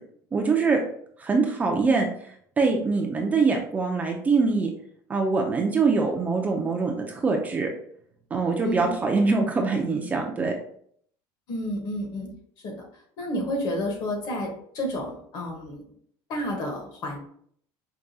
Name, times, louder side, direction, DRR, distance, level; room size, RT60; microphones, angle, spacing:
voice 1, 0.3-0.8 1.2-4.7 5.1-7.7 8.3-10.5, right 4 dB, 15° right, 1 dB, 0.4 m, -24 dB
voice 2, 8.6-9.0 11.5-12.3 12.6-12.7 13.2-15.8 16.3-17.2, left 1 dB, 45° left, 1 dB, 1.0 m, -30 dB
4.6 x 2.2 x 2.6 m, 0.63 s
cardioid pair, 160°, 9 cm